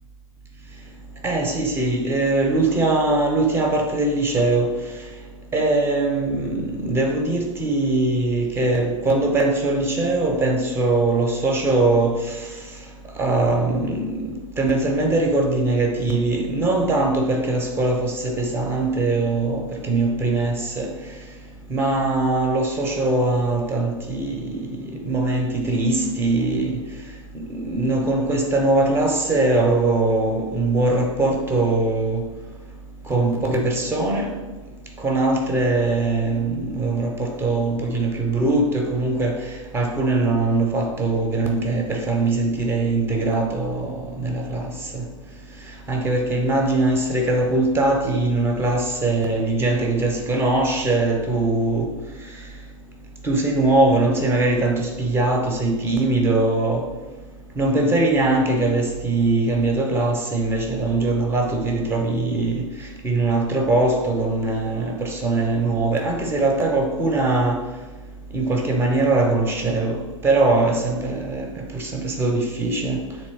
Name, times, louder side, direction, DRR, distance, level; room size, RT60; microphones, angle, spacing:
voice 1, 1.2-4.7 5.5-12.2 13.2-14.2 14.6-20.9 21.7-26.8 27.5-32.2 33.1-34.3 35.0-39.4 39.7-44.6 45.9-51.9 53.2-56.9 57.6-62.6 63.0-67.6 68.3-71.5 71.7-73.0, right 2 dB, 15° right, 0.7 m, -21 dB
3.4 x 2.9 x 4.6 m
figure-of-eight pair, 105°, 17 cm